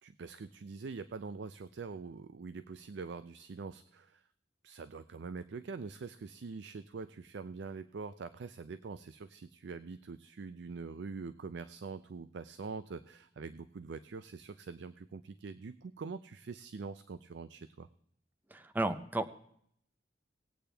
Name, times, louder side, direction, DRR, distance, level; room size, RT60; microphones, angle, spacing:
voice 1, 0.0-4.2 4.6-17.9, right 4 dB, 65° right, 13 dB, 0.4 m, -44 dB
voice 2, 18.5-19.4, right 2 dB, 10° right, 10 dB, 0.6 m, -33 dB
19.0 x 8.6 x 3.4 m, 0.68 s
head